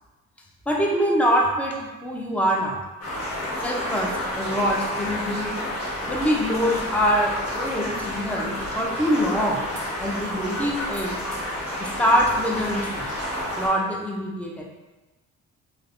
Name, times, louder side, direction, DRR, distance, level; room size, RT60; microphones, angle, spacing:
voice 1, 0.7-2.8 3.6-5.5 6.1-9.6 10.0-11.2 11.8-13.1 13.6-14.6, equal, 5° left, -1 dB, 0.5 m, -24 dB
sound 1, 3.0-13.7, left 1 dB, 55° left, 1.1 m, -30 dB
3.3 x 2.1 x 2.5 m, 1.1 s
cardioid pair, 90°, 30 cm